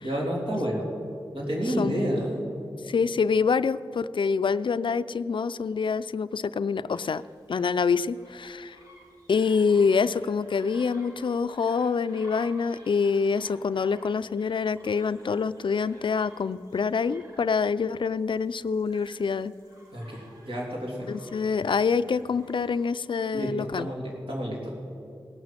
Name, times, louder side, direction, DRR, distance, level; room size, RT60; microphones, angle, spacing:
voice 1, 0.0-0.9 1.3-2.4 19.9-21.1 23.3-24.8, equal, 75° right, -3 dB, 3.3 m, -30 dB
voice 2, 1.8-2.1 2.9-7.2 7.5-8.8 9.3-19.5 21.1-23.9, left 5 dB, 65° left, 15 dB, 0.4 m, -26 dB
sound 1, 6.9-22.9, equal, 45° right, 3.6 m, -54 dB
17.5 x 6.2 x 7.4 m, 2.6 s
cardioid pair, 50°, 9 cm